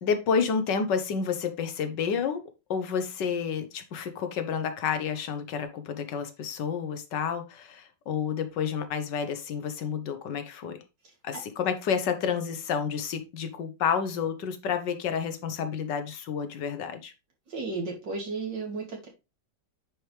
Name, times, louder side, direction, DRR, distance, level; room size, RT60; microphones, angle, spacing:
voice 1, 0.0-2.4 2.7-10.8 11.2-17.1, left 6 dB, 85° left, 1.6 m, -30 dB
voice 2, 17.5-19.1, right 3 dB, 90° right, 3.1 m, -34 dB
9.7 x 4.8 x 3.3 m
omnidirectional pair, 1.9 m